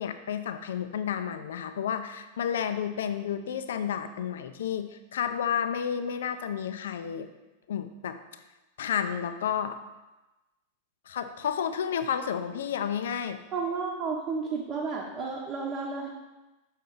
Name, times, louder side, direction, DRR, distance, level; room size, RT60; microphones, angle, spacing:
voice 1, 0.0-7.3 7.7-8.2 8.8-9.8 11.1-13.4, left 8 dB, 60° left, 9 dB, 0.4 m, -31 dB
voice 2, 13.5-16.1, right 4 dB, 35° right, -3 dB, 0.9 m, -32 dB
6.2 x 4.6 x 3.8 m, 1.1 s
figure-of-eight pair, 90°, 0 cm